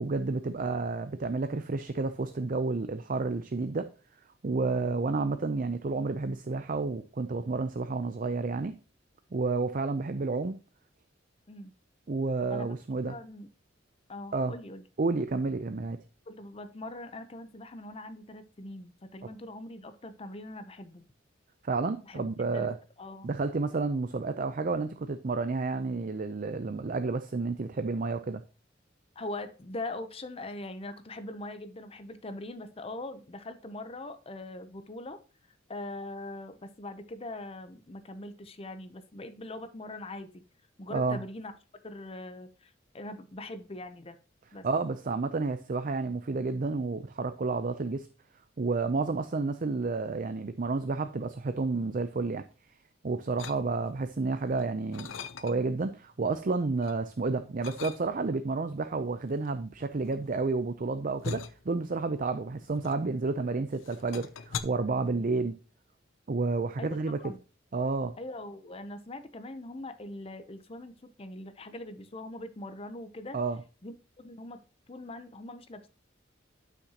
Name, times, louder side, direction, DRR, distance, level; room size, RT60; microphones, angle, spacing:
voice 1, 0.0-3.9 4.4-8.7 9.3-10.6 12.1-13.2 14.3-14.5 15.0-16.0 21.6-22.8 23.2-28.4 40.9-41.2 44.6-48.1 48.6-52.4 53.0-55.1 55.4-65.6 66.3-67.2 67.7-68.1 73.3-73.6, right 3 dB, 45° right, 9 dB, 0.5 m, -30 dB
voice 2, 13.0-13.5 14.1-14.8 16.3-21.1 22.0-22.7 23.0-23.3 29.2-35.2 35.7-40.3 40.8-41.5 41.8-44.2 44.5-44.6 66.8-66.9 67.2-67.4 68.2-73.4 73.8-74.6 74.9-75.9, left 2 dB, 30° left, 10 dB, 0.7 m, -42 dB
sound 1, 53.4-54.1 54.5-55.8 56.2-57.0 57.6-58.4 59.3-63.4 63.7-64.6, left 5 dB, 90° left, 0.6 m, -41 dB
12.0 x 5.9 x 2.9 m, 0.34 s
head